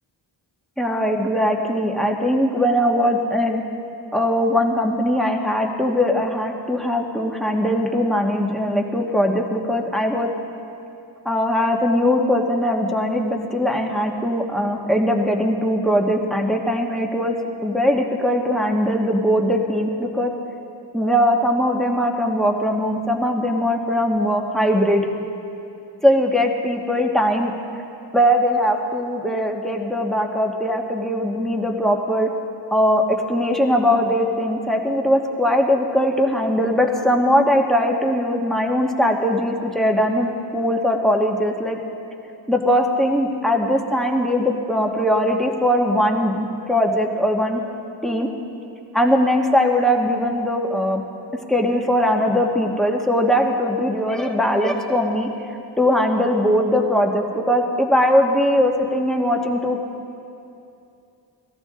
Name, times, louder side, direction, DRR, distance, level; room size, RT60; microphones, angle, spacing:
voice 1, 0.8-3.6 4.1-10.3 11.2-17.3 17.6-20.3 20.9-25.0 26.0-27.5 28.1-32.3 32.7-41.8 42.5-47.6 48.0-48.3 48.9-51.0 51.5-55.3 55.8-59.8, equal, ahead, 1 dB, 1.3 m, -20 dB
19.0 x 14.0 x 3.7 m, 2.7 s
wide cardioid pair, 40°, 44 cm